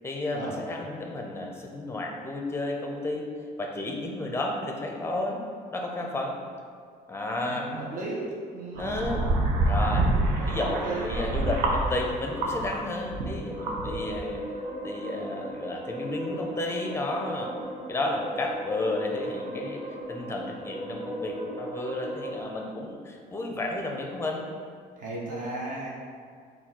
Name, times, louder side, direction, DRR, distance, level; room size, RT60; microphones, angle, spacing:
voice 1, 0.0-3.2 3.6-5.4 5.7-6.3 7.1-7.7 8.8-9.2 9.7-10.1 10.5-14.4 14.8-17.5 17.9-19.8 20.1-24.4, left 2 dB, 15° left, 0 dB, 0.5 m, -32 dB
voice 2, 7.5-8.3 8.5-9.0 9.8-11.1 25.0-25.9, right 2 dB, 50° right, -4 dB, 0.8 m, -35 dB
sound 1, 8.8-12.8 13.1-14.3, right 2 dB, 90° right, 0.6 m, -27 dB
sound 2, 13.1-22.4, equal, 25° right, 1.4 m, -37 dB
4.2 x 2.3 x 4.2 m, 2.1 s
cardioid pair, 110°, 17 cm